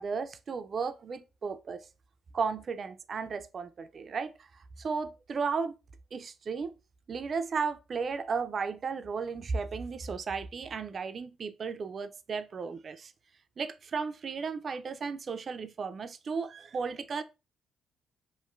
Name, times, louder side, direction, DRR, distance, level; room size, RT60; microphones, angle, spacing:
voice 1, 0.0-1.8 2.3-4.3 4.8-5.8 6.1-6.7 7.1-13.1 13.6-17.2, right 5 dB, 45° right, 0.3 m, -34 dB
2.9 x 2.5 x 2.3 m
cardioid pair, 90°, 0 cm